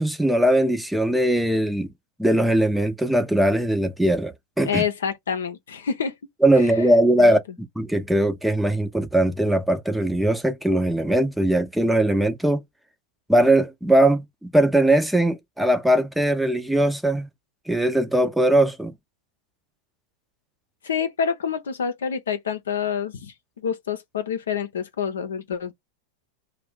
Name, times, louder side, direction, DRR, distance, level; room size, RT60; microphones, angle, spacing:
voice 1, 0.0-1.9 2.2-4.9 6.4-12.6 13.3-17.3 17.7-18.9, right 1 dB, 5° right, 0.6 m, -20 dB
voice 2, 4.6-6.2 7.2-7.3 20.8-25.7, left 7 dB, 80° left, 0.7 m, -27 dB
2.6 x 2.3 x 3.5 m
hypercardioid pair, 100°, 0 cm